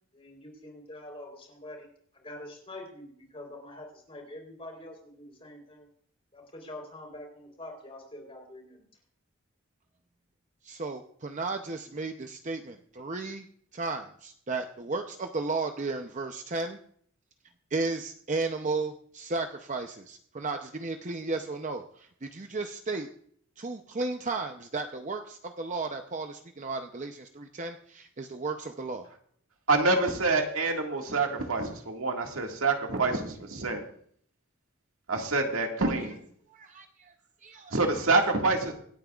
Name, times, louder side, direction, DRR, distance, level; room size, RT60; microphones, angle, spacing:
voice 1, 0.1-1.9 2.1-5.9 6.3-8.8, left 1 dB, 30° left, 1 dB, 3.8 m, -45 dB
voice 2, 10.6-13.5 13.7-16.8 17.7-23.1 23.6-29.1 36.5-37.1 37.4-37.7, right 3 dB, 35° right, 5 dB, 0.6 m, -34 dB
voice 3, 29.7-33.8 35.1-36.2 37.7-38.7, right 3 dB, 80° right, 2 dB, 1.9 m, -26 dB
26.5 x 8.8 x 2.4 m, 0.62 s
head